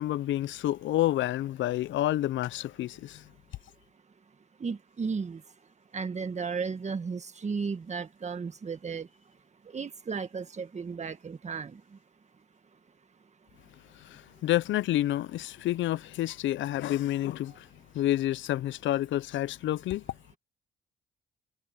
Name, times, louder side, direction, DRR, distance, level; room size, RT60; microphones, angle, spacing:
voice 1, 0.0-3.2 14.0-17.7 17.9-20.0, left 14 dB, 70° left, 0.5 m, -29 dB
voice 2, 4.6-5.5 5.9-9.1 9.6-12.0 17.5-17.6, right 5 dB, 35° right, 1.8 m, -34 dB
cardioid pair, 90°, 20 cm